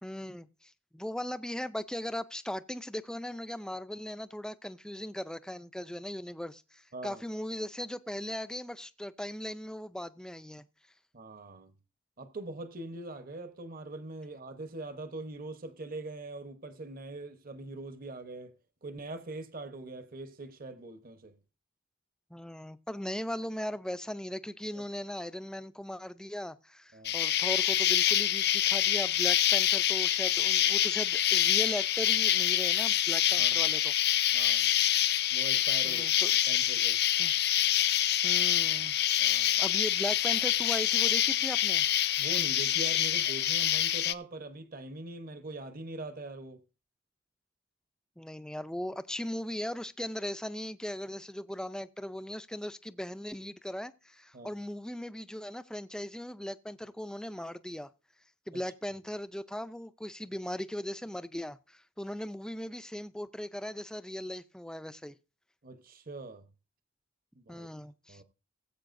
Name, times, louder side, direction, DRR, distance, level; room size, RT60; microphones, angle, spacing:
voice 1, 0.0-10.6 22.3-33.9 35.8-36.3 37.2-37.3 38.2-38.9 39.6-41.9 48.2-57.9 58.5-65.1 67.5-68.2, left 1 dB, 5° left, 0.5 m, -38 dB
voice 2, 6.9-7.2 11.1-11.7 12.2-18.5 18.8-21.4 24.7-24.8 26.9-27.1 33.4-33.6 34.3-34.7 35.3-36.0 36.5-37.0 39.2-39.6 42.2-46.6 54.3-54.5 58.5-58.6 65.6-66.5 67.3-67.7 68.1-68.2, right 2 dB, 45° right, 1.0 m, -42 dB
Insect, 27.0-44.1, left 12 dB, 55° left, 0.6 m, -26 dB
19.0 x 8.3 x 2.6 m
head